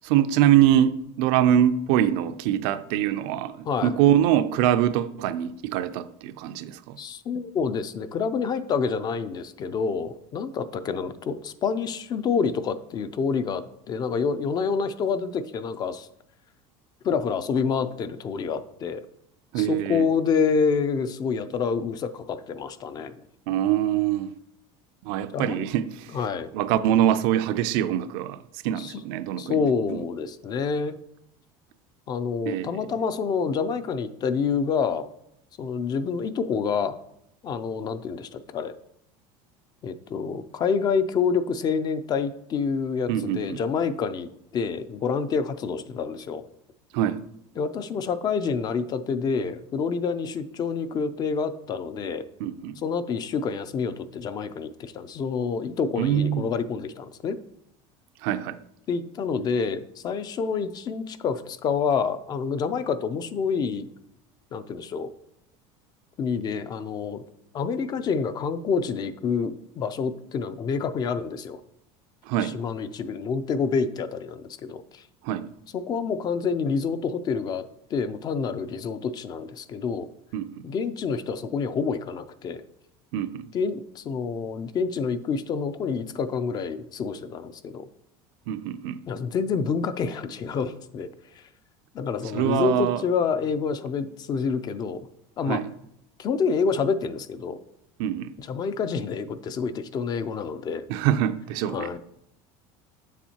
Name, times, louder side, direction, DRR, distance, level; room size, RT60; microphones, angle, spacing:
voice 1, 0.0-7.0 19.5-20.1 23.5-24.3 25.0-26.2 26.5-29.6 29.9-30.0 32.5-32.8 43.1-43.6 46.9-47.2 52.4-52.8 56.0-56.5 58.2-58.6 72.3-72.6 75.2-75.5 80.3-80.5 83.1-83.5 88.5-89.0 92.3-93.0 95.5-95.7 98.0-98.3 100.9-102.0, right 11 dB, 70° right, 0.4 m, -24 dB
voice 2, 7.0-16.1 17.0-19.0 19.6-23.2 25.3-25.6 26.1-26.5 28.8-29.0 29.4-31.0 32.1-35.1 35.6-37.0 37.4-38.7 39.8-46.4 47.6-52.2 52.8-57.4 58.9-63.9 64.5-65.1 66.2-67.2 67.5-71.6 72.4-75.0 75.7-77.7 77.9-80.1 80.6-82.6 83.5-87.9 89.1-91.5 91.9-95.1 95.4-95.6 96.2-97.6 98.4-100.8 101.7-102.0, left 5 dB, 30° left, 0.4 m, -27 dB
7.2 x 7.0 x 2.8 m
cardioid pair, 145°, 13 cm